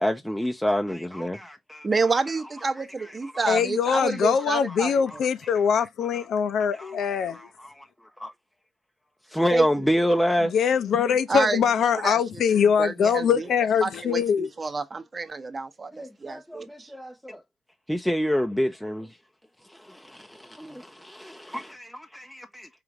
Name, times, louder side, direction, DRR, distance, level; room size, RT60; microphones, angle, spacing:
voice 1, 0.0-2.2 2.6-3.5 4.0-4.8 5.1-5.2 6.8-7.9 8.2-8.3 9.3-10.5 15.9-17.4 17.9-19.2 19.7-22.7, equal, 5° left, 0.4 m, -28 dB
voice 2, 1.8-4.9 9.5-9.7 11.3-13.5 13.8-16.9, right 4 dB, 30° right, 0.8 m, -29 dB
voice 3, 3.5-7.4 10.5-14.5, left 7 dB, 65° left, 0.5 m, -23 dB
4.8 x 2.5 x 2.9 m
cardioid pair, 105°, 0 cm